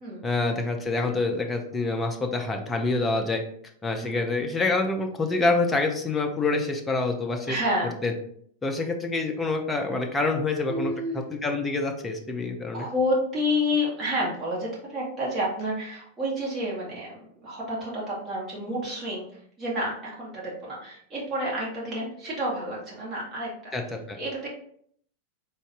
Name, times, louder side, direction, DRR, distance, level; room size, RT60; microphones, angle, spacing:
voice 1, 0.2-3.4 3.8-7.6 8.0-8.1 8.6-12.9 23.7-24.2, left 3 dB, 15° left, 3 dB, 0.6 m, -26 dB
voice 2, 4.0-4.3 7.5-8.0 10.7-11.2 12.7-19.2 19.6-23.5 24.2-24.5, left 1 dB, 20° right, -6 dB, 1.4 m, -29 dB
4.0 x 2.4 x 3.4 m, 0.64 s
figure-of-eight pair, 90°, 0 cm